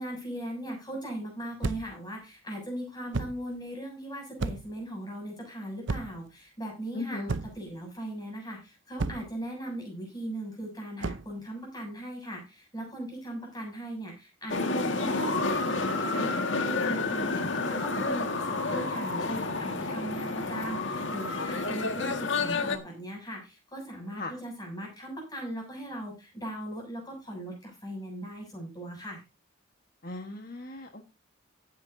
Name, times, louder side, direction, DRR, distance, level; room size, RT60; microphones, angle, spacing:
voice 1, 0.0-29.2, right 1 dB, 20° left, 1 dB, 7.1 m, -39 dB
sound 1, 1.6-2.0 3.1-3.5 4.4-4.8 5.9-6.3 7.3-7.7 9.0-9.4 11.0-11.3, right 3 dB, 65° right, 0.7 m, -33 dB
voice 2, 6.9-7.3 24.2-24.3 30.0-31.0, left 2 dB, 45° left, 5 dB, 1.4 m, -37 dB
sound 2, 14.5-22.8, left 3 dB, 70° left, 1.8 m, -30 dB
17.0 x 9.6 x 2.7 m, 0.26 s
head